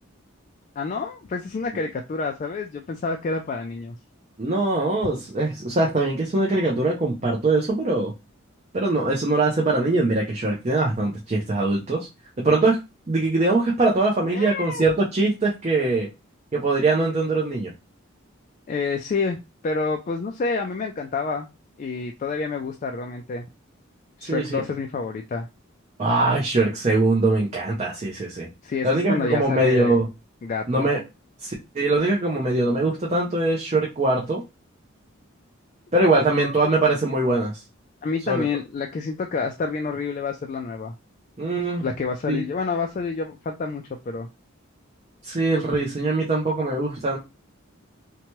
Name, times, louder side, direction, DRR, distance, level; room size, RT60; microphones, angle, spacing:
voice 1, 0.8-4.0 14.2-14.9 18.7-21.5 21.8-23.4 24.2-25.5 28.6-30.0 30.4-30.9 36.2-36.5 38.0-40.9 41.8-44.3, left 4 dB, 40° left, 3 dB, 0.3 m, -28 dB
voice 2, 4.4-8.1 8.7-12.1 12.4-12.8 13.1-16.1 16.5-17.7 24.2-24.6 26.0-28.5 28.8-30.1 30.7-31.0 31.4-34.4 35.9-37.6 38.3-38.4 41.4-41.9 42.3-42.4 45.2-47.2, right 2 dB, 30° right, -3 dB, 0.6 m, -22 dB
2.8 x 2.2 x 3.0 m, 0.25 s
head